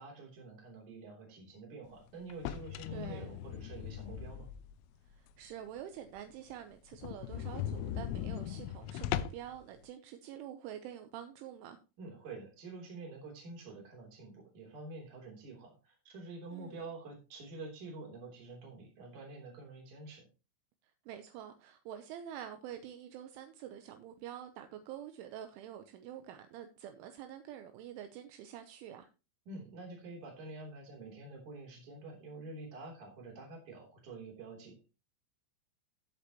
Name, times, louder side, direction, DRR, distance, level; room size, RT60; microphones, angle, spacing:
voice 1, 0.0-4.5 12.0-20.2 29.5-34.8, right 3 dB, 40° right, 4.2 m, -48 dB
sound 1, 2.3-4.9 5.3-5.4 5.8-5.9 6.2-6.3 6.5-6.6 6.9-9.6, left 11 dB, 85° left, 3.1 m, -39 dB
voice 2, 2.9-3.3 5.2-11.8 16.5-16.8 21.1-29.1, right 10 dB, 80° right, 3.1 m, -47 dB
16.5 x 6.8 x 3.0 m
omnidirectional pair, 5.8 m